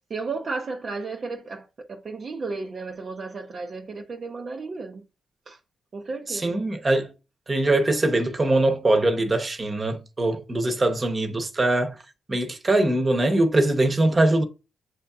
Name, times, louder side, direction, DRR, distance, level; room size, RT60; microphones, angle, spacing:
voice 1, 0.1-5.0 5.5-5.6 5.9-6.6, right 3 dB, 50° right, 0.5 m, -33 dB
voice 2, 6.3-7.1 7.5-12.0 12.3-14.4, right 2 dB, 30° right, 0.9 m, -22 dB
7.6 x 2.7 x 2.3 m
cardioid pair, 80°, 0 cm